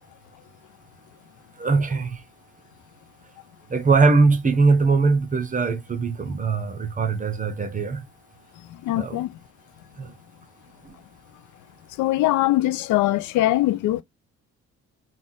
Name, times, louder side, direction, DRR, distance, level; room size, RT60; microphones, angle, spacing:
voice 1, 1.6-2.2 3.7-8.0 9.0-9.2 10.0-10.1 10.8-10.9, right 4 dB, 25° right, 0.9 m, -21 dB
voice 2, 8.7-9.4 12.0-14.0, left 16 dB, 85° left, 0.5 m, -22 dB
4.1 x 2.4 x 3.6 m
cardioid pair, 90°, 30 cm